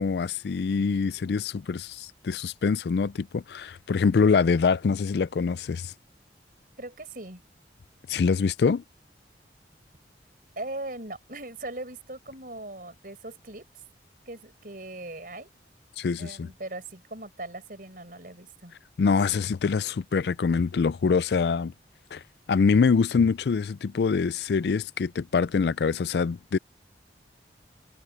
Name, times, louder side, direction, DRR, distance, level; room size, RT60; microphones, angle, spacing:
voice 1, 0.0-5.9 8.1-8.8 16.0-16.5 19.0-21.7 22.1-22.2 22.5-26.6, left 5 dB, 70° left, 0.4 m, -24 dB
voice 2, 6.8-7.4 10.5-13.6 14.3-15.5 16.2-18.7, right 2 dB, 50° right, 5.0 m, -39 dB
head